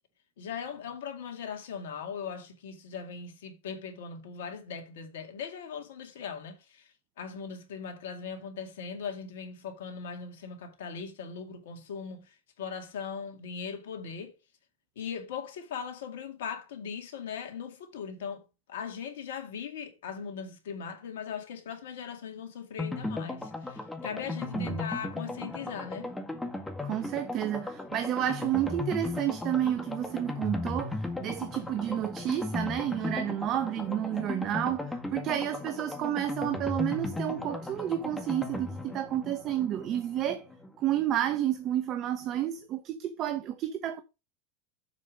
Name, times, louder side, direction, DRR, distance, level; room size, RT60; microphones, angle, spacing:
voice 1, 0.4-6.9 7.2-12.2 12.6-14.3 15.0-18.4 18.7-26.1, left 6 dB, 75° left, 2.2 m, -39 dB
sound 1, 22.8-41.4 41.7-41.8 42.0-42.1, left 2 dB, 10° left, 1.9 m, -37 dB
voice 2, 24.5-24.9 26.8-40.4 40.8-44.0, right 11 dB, 45° right, 0.9 m, -30 dB
7.4 x 5.0 x 5.0 m
hypercardioid pair, 95°, 0 cm